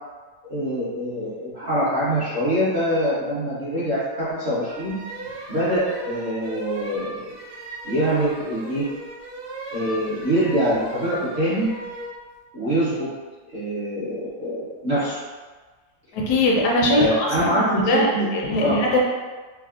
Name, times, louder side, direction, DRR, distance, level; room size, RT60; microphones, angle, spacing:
voice 1, 0.5-5.0 5.5-7.3 7.8-8.9 9.7-11.7 12.5-13.1 13.5-15.2 17.0-18.3 18.6-18.8, equal, 55° right, -10 dB, 0.8 m, -24 dB
sound 1, 4.7-12.2, right 2 dB, 85° right, 1.2 m, -37 dB
voice 2, 16.1-18.1 18.3-19.0, left 1 dB, 80° left, -2 dB, 1.1 m, -21 dB
3.4 x 2.0 x 2.3 m, 1.4 s
omnidirectional pair, 1.8 m